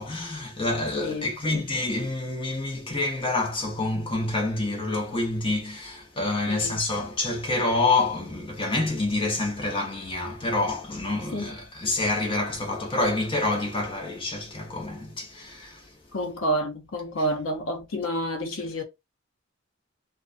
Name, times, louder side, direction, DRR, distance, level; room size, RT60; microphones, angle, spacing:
voice 1, 0.0-15.9, left 2 dB, 25° left, 0.7 m, -27 dB
voice 2, 1.0-1.6 6.5-6.8 11.3-11.5 16.1-18.8, equal, 80° left, 0.6 m, -29 dB
2.3 x 2.2 x 2.4 m
head